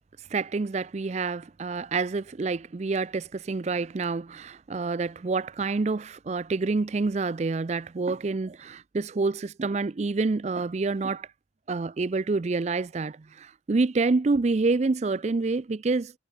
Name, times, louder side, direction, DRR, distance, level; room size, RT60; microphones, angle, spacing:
voice 1, 0.3-11.3 11.7-16.1, right 3 dB, 35° right, 0.4 m, -27 dB
head